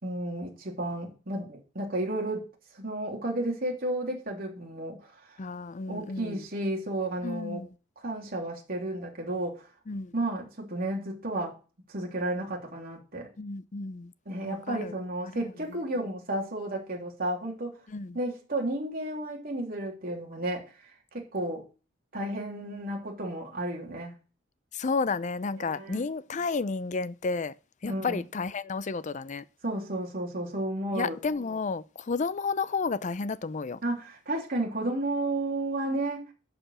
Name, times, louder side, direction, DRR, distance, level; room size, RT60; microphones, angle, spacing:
voice 1, 0.0-2.5 2.8-5.0 5.9-7.6 8.0-9.6 10.1-11.5 11.9-13.3 14.2-17.8 18.1-20.6 21.1-21.6 22.1-24.1 25.6-26.0 27.8-28.2 29.6-31.2 33.8-36.3, right 1 dB, 50° right, 3.3 m, -32 dB
voice 2, 5.4-6.4 7.2-7.7 9.9-10.1 13.4-14.1 14.4-14.9 15.2-15.5 17.9-18.2 24.7-27.5 27.8-29.4 30.9-33.8, left 4 dB, 40° left, 0.5 m, -32 dB
11.0 x 5.0 x 7.5 m
head